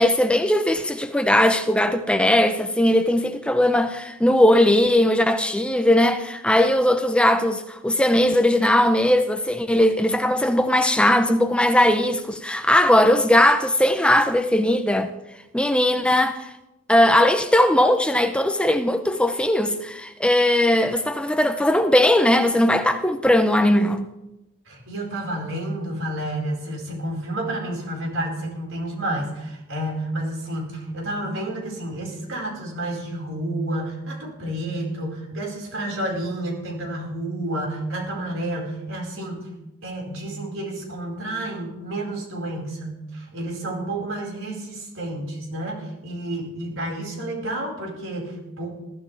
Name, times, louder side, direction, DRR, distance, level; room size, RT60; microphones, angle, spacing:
voice 1, 0.0-15.1 15.5-16.5 16.9-24.1, left 1 dB, 5° left, 0.6 m, -19 dB
voice 2, 24.6-39.5 39.8-48.7, right 1 dB, 75° right, 5.0 m, -30 dB
21.5 x 13.5 x 3.4 m
head